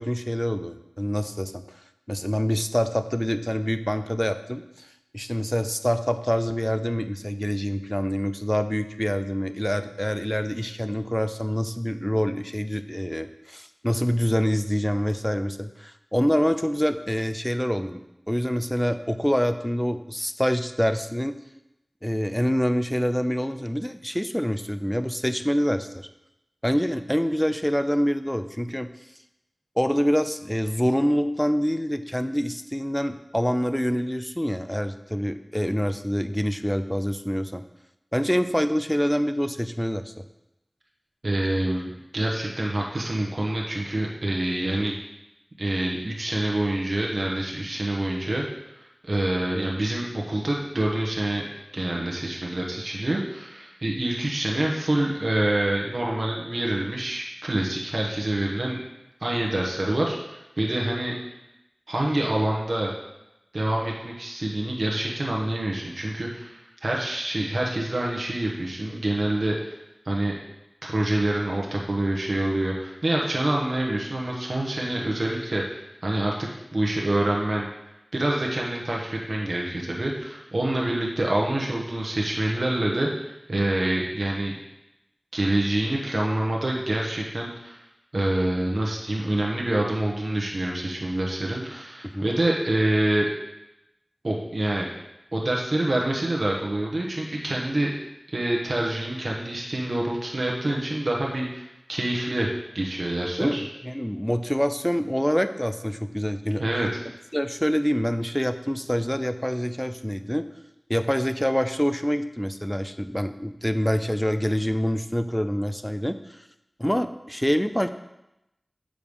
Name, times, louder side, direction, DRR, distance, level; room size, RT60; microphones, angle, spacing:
voice 1, 0.0-1.6 2.1-4.9 5.1-21.4 22.0-26.1 26.6-28.9 29.8-37.6 38.1-40.1 92.0-92.3 103.4-103.6 103.8-106.6 107.3-110.5 110.9-116.4 116.8-117.9, equal, 5° left, 10 dB, 0.4 m, -26 dB
voice 2, 41.2-45.0 45.6-48.4 49.0-51.5 51.7-58.9 59.2-61.2 61.9-62.9 63.5-69.8 70.0-70.4 70.8-77.7 78.1-84.6 85.3-87.8 88.1-93.3 94.2-94.9 95.3-97.9 98.3-102.5 102.7-103.7 106.6-106.9, right 1 dB, 65° right, -2 dB, 1.0 m, -26 dB
6.7 x 5.0 x 5.3 m, 0.90 s
wide cardioid pair, 60°, 0 cm